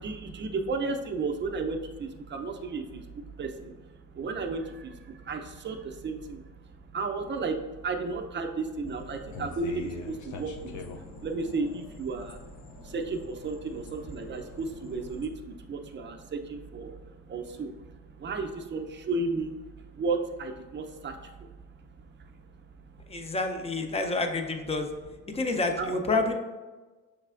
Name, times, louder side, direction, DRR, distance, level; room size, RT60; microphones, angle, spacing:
voice 1, 0.0-22.5 22.9-23.2 25.8-26.2, right 3 dB, 35° right, 4 dB, 0.5 m, -34 dB
sound 1, 8.8-15.3, left 4 dB, 70° left, 0.5 m, -44 dB
voice 2, 23.1-24.9 25.3-26.3, left 3 dB, 20° left, 5 dB, 0.5 m, -28 dB
6.5 x 3.2 x 2.4 m, 1.2 s
cardioid pair, 110°, 30 cm